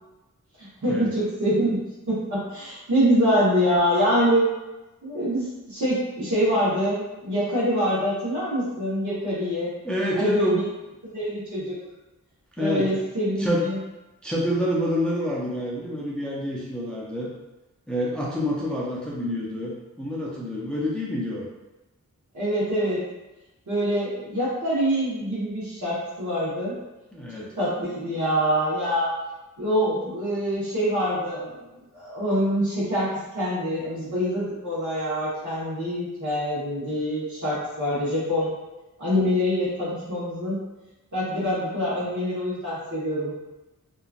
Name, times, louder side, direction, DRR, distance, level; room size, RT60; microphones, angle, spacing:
voice 1, 0.6-4.5 5.0-9.7 10.2-10.7 11.1-11.7 12.6-13.8 18.7-18.8 22.3-23.0 23.7-26.8 27.3-29.1 29.6-31.5 31.9-33.1 33.3-38.5 39.0-40.6 41.1-43.3, equal, 65° right, -9 dB, 1.2 m, -25 dB
voice 2, 9.8-10.6 12.6-12.9 13.4-13.7 14.2-17.3 17.9-21.5 27.1-27.5 27.8-28.0, equal, 5° left, -5 dB, 0.5 m, -27 dB
2.9 x 2.4 x 2.4 m, 1.0 s
wide cardioid pair, 90°, 32 cm